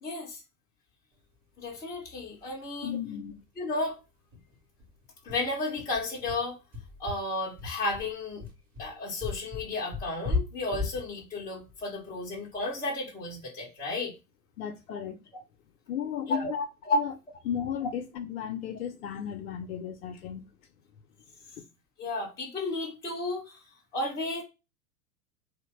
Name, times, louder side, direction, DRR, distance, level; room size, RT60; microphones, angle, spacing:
voice 1, 0.0-0.4 1.6-3.0 3.6-4.0 5.2-6.6 7.0-8.4 8.8-14.1 16.3-16.5 16.9-17.0 22.0-23.6 23.9-24.4, left 2 dB, 10° left, 0.4 m, -33 dB
sound 1, 2.4-2.5 2.8-2.9 3.2-3.4 3.7-3.8 4.3-12.7, left 3 dB, 20° right, 0.7 m, -36 dB
voice 2, 2.8-3.3 14.6-15.2 15.9-16.7 16.9-17.1 17.5-20.4 21.6-21.7, left 8 dB, 65° left, 0.5 m, -34 dB
2.8 x 2.1 x 3.0 m
figure-of-eight pair, 95°, 47 cm